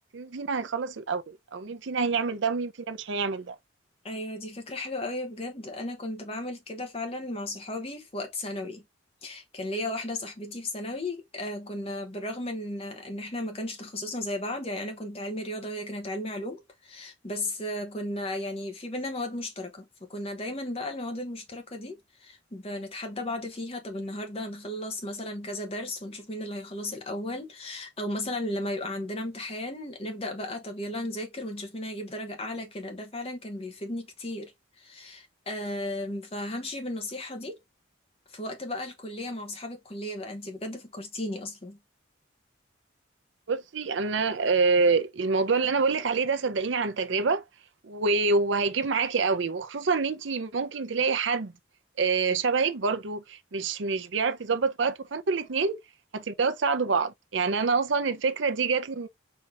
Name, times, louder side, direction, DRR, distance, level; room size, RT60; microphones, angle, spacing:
voice 1, 0.1-3.6 43.5-47.4 47.8-51.5 52.0-55.8 56.1-59.1, right 4 dB, 70° right, 0.6 m, -26 dB
voice 2, 4.0-8.8 9.2-34.5 34.8-37.6 38.3-41.8, left 1 dB, 30° left, 1.0 m, -35 dB
4.3 x 2.8 x 3.4 m
head